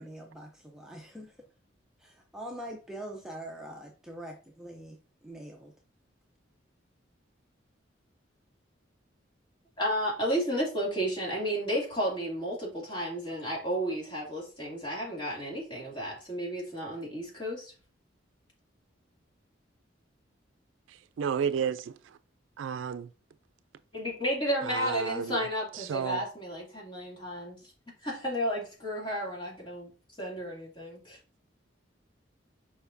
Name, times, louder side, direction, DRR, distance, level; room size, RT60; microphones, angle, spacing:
voice 1, 0.0-1.4 2.0-4.9 5.2-5.7, right 1 dB, 5° right, 0.6 m, -43 dB
voice 2, 9.8-17.7 23.9-27.6 28.0-29.9 30.2-31.2, equal, 25° left, 2.6 m, -32 dB
voice 3, 21.2-21.9 22.6-23.1 24.7-25.4 25.9-26.2, right 7 dB, 90° right, 0.3 m, -31 dB
6.9 x 5.0 x 2.7 m
head